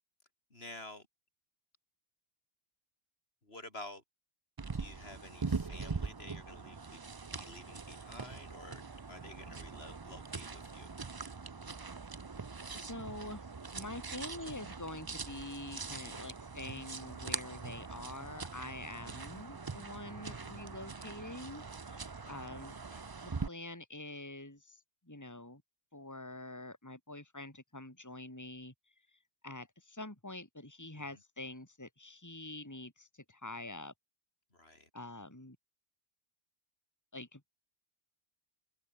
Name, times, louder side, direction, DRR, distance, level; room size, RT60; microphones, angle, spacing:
voice 1, 0.5-1.1 3.4-4.0 4.7-7.0 7.3-10.9 22.2-22.5 22.9-23.0 30.9-31.2 34.5-34.9, left 2 dB, 80° left, 5.6 m, -51 dB
sound 1, 4.6-23.5, right 4 dB, 25° right, 0.6 m, -42 dB
voice 2, 12.7-22.8 23.2-25.6 25.9-28.7 29.4-33.9 34.9-35.6 37.1-37.5, left 2 dB, 15° left, 2.8 m, -46 dB
omnidirectional pair, 1.0 m